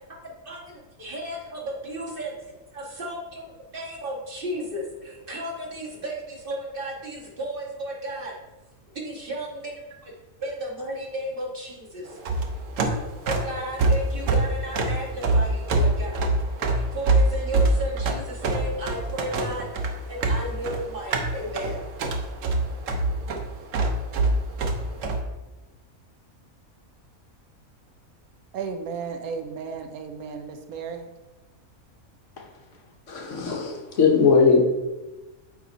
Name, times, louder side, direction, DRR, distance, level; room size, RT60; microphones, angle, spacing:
voice 1, 0.2-2.3 2.7-8.3 8.9-10.1 10.4-12.2 13.3-16.3 16.7-19.7 20.1-21.9, right 1 dB, 40° right, 1.6 m, -34 dB
sound 1, 12.1-25.2, right 2 dB, 65° right, 1.1 m, -24 dB
voice 2, 28.5-31.1, right 5 dB, 90° right, 1.2 m, -34 dB
voice 3, 33.1-34.6, left 5 dB, 60° left, 1.2 m, -19 dB
8.9 x 3.5 x 4.0 m
omnidirectional pair, 1.5 m